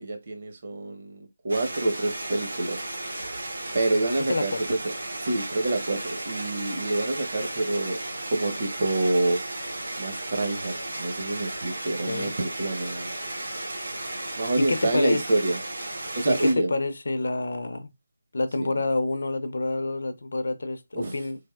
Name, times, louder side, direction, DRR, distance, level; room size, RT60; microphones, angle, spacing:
voice 1, 0.0-2.8 3.7-4.8 5.2-8.0 8.3-9.4 10.0-13.1 14.4-15.6 16.2-16.7 18.6-18.7 20.9-21.1, right 2 dB, 45° right, 0.7 m, -27 dB
sound 1, 1.5-16.5, right 1 dB, 85° right, 1.1 m, -34 dB
voice 2, 4.3-4.6 12.0-12.3 14.5-15.2 16.3-17.9 18.3-21.4, left 2 dB, 65° left, 0.5 m, -27 dB
3.3 x 2.6 x 2.3 m
figure-of-eight pair, 165°, 0 cm